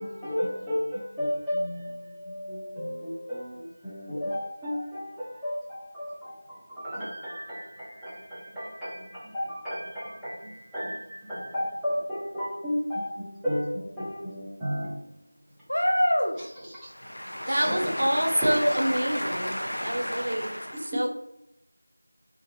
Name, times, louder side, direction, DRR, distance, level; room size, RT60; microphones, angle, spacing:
voice 1, 0.0-15.0 16.7-16.9 17.5-17.8 18.4-18.8, equal, ahead, 0.4 m, -33 dB
voice 2, 15.7-16.4 16.8-21.0, equal, 80° left, 0.6 m, -29 dB
voice 3, 17.5-20.5 20.8-21.1, equal, 65° right, 0.6 m, -27 dB
2.6 x 2.4 x 2.4 m
figure-of-eight pair, 175°, 0 cm